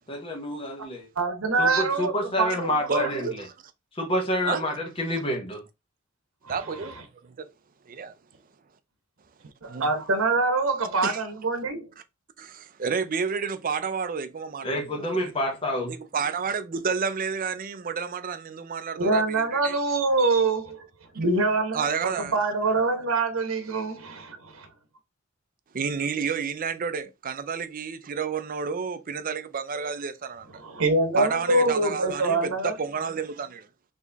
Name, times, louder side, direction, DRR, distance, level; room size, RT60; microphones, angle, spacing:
voice 1, 0.1-1.1 1.6-3.3 3.9-5.6 14.6-16.0, equal, 25° left, 1.2 m, -28 dB
voice 2, 1.2-3.3 6.4-6.6 9.6-11.9 19.0-20.9 21.1-24.7 30.5-32.7, right 3 dB, 75° right, 1.1 m, -25 dB
voice 3, 6.5-7.0 7.4-7.5 7.9-8.1 9.7-9.9 11.0-11.2 12.4-15.1 15.9-19.8 21.7-22.3 25.7-30.5 31.2-33.7, right 6 dB, 45° right, 0.5 m, -30 dB
4.3 x 3.0 x 3.4 m
head